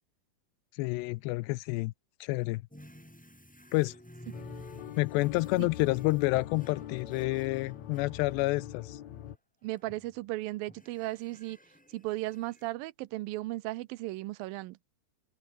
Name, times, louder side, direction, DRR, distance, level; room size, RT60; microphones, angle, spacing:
voice 1, 0.7-1.9 2.2-2.6 3.7-3.9 5.0-9.0, left 21 dB, 85° left, 2.8 m, -29 dB
sound 1, 2.7-9.1 9.6-10.2 10.7-12.7, equal, 5° left, 1.9 m, -53 dB
sound 2, 4.3-9.4, left 11 dB, 60° left, 2.0 m, -43 dB
voice 2, 9.6-11.6 11.9-14.8, right 18 dB, 80° right, 2.1 m, -36 dB
omnidirectional pair, 4.9 m